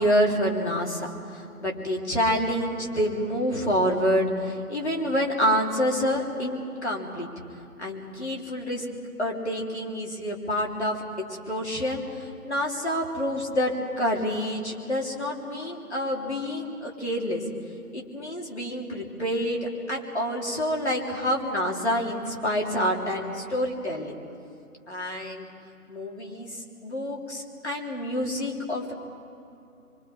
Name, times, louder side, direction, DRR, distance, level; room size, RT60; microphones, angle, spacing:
voice 1, 0.0-7.3 7.8-8.8 9.2-11.0 11.3-17.4 17.9-24.1 24.9-25.5 25.9-28.9, equal, 50° left, -1 dB, 3.2 m, -27 dB
26.0 x 24.5 x 4.8 m, 2.7 s
figure-of-eight pair, 170°, 45 cm